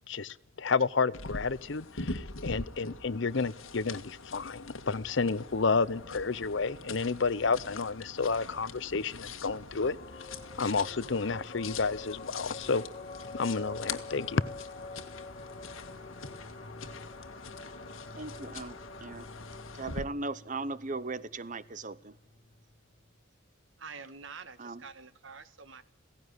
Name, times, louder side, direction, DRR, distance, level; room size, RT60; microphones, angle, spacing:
voice 1, 0.1-10.0 10.6-12.8 13.3-14.4, left 4 dB, 60° left, 0.7 m, -30 dB
sound 1, 1.1-20.0, left 3 dB, 75° left, 1.7 m, -43 dB
sound 2, 9.8-22.6, left 3 dB, 35° left, 1.0 m, -47 dB
voice 2, 18.2-19.3 19.7-22.2 24.6-24.8, right 3 dB, 35° right, 0.9 m, -38 dB
voice 3, 23.8-25.8, right 5 dB, 60° right, 1.4 m, -47 dB
17.0 x 16.0 x 9.5 m
head